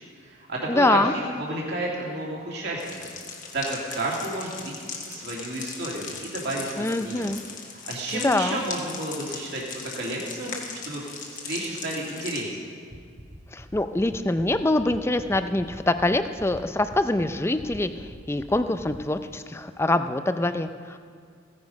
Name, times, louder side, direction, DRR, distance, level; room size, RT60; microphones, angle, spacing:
voice 1, 0.0-3.1 3.5-7.3 7.9-12.6, right 1 dB, 55° right, -3 dB, 2.5 m, -32 dB
voice 2, 0.7-1.1 6.8-7.4 8.1-8.6 13.5-17.9 18.3-21.0, left 2 dB, 10° left, 10 dB, 0.4 m, -24 dB
sound 1, 2.8-12.4, left 5 dB, 40° left, 1.5 m, -39 dB
sound 2, 12.9-19.0, equal, 20° right, 1.1 m, -43 dB
16.0 x 9.6 x 5.3 m, 2.1 s
head